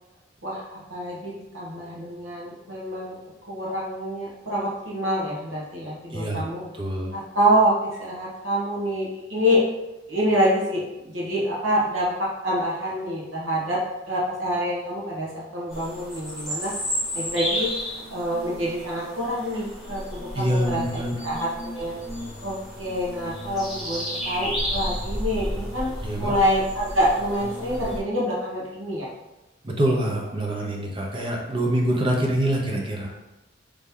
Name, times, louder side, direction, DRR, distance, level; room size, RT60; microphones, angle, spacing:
voice 1, 0.4-3.2 3.5-6.6 7.1-9.7 10.1-16.7 17.1-17.7 18.1-22.0 22.4-29.1, equal, 85° right, -5 dB, 1.2 m, -26 dB
voice 2, 6.1-6.4 6.8-7.1 20.3-21.1 26.0-26.3 29.6-33.1, right 1 dB, 25° right, 0 dB, 0.6 m, -25 dB
sound 1, 15.7-28.0, equal, ahead, 1.1 m, -32 dB
3.2 x 2.7 x 3.7 m, 0.98 s
head